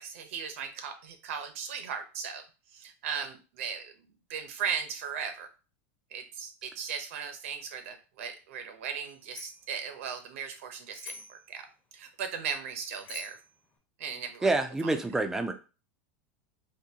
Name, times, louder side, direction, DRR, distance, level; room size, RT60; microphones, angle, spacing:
voice 1, 0.0-2.4 2.7-3.9 4.3-5.5 6.1-11.6 11.9-13.4 14.0-14.5, right 7 dB, 75° right, 7 dB, 0.7 m, -37 dB
Bicycle bell, 9.0-9.7 10.9-11.5 12.7-13.5, left 3 dB, 25° left, 0.7 m, -46 dB
voice 2, 14.4-15.5, right 2 dB, 5° right, 7 dB, 0.3 m, -27 dB
3.7 x 2.6 x 2.8 m, 0.33 s
supercardioid pair, 155°, 7 cm